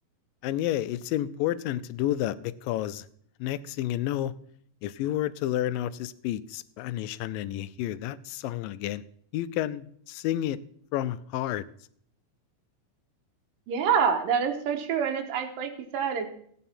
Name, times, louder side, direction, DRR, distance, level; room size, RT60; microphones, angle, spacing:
voice 1, 0.4-3.1 3.4-4.3 4.8-9.0 9.3-10.6 10.9-11.6, left 13 dB, 90° left, 16 dB, 2.3 m, -30 dB
voice 2, 13.7-16.4, right 7 dB, 90° right, 4 dB, 2.7 m, -27 dB
15.0 x 9.2 x 4.3 m, 0.63 s
omnidirectional pair, 3.9 m